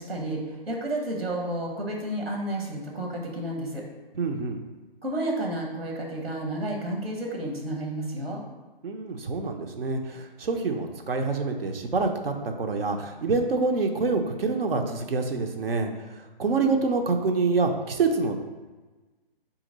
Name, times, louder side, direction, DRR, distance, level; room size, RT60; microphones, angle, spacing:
voice 1, 0.0-3.8 5.0-8.4, right 1 dB, 90° right, 1 dB, 1.0 m, -31 dB
voice 2, 4.1-4.6 8.8-18.3, right 4 dB, 75° right, 4 dB, 0.6 m, -26 dB
3.9 x 2.8 x 3.9 m, 1.2 s
figure-of-eight pair, 135°, 29 cm